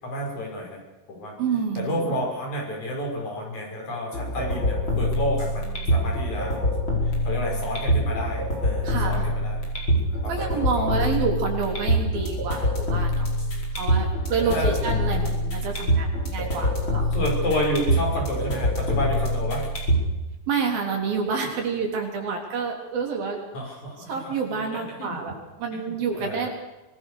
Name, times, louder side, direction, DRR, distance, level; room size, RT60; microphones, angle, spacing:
voice 1, 0.0-0.8 1.1-1.3 1.8-6.6 7.0-9.6 10.2-11.2 14.4-14.8 17.1-19.7 23.5-25.2 25.7-26.5, equal, 50° left, -1 dB, 7.2 m, -30 dB
voice 2, 1.4-2.1 8.8-9.3 10.0-13.3 13.7-17.1 20.5-23.4 24.1-26.5, right 5 dB, 65° right, 2 dB, 5.3 m, -28 dB
sound 1, 4.1-20.1, equal, 30° left, 6.0 m, -25 dB
25.0 x 20.0 x 6.8 m, 1.1 s
omnidirectional pair, 4.4 m